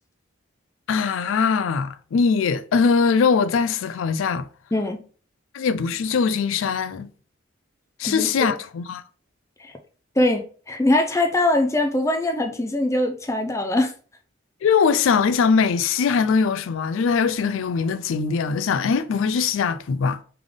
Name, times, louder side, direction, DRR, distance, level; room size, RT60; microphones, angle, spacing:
voice 1, 0.9-4.5 5.5-7.1 8.0-9.0 14.6-20.2, left 5 dB, 75° left, 0.3 m, -21 dB
voice 2, 4.7-5.0 8.0-8.6 9.6-9.7 10.2-13.9, left 1 dB, 15° left, 0.4 m, -22 dB
3.5 x 3.4 x 3.6 m
head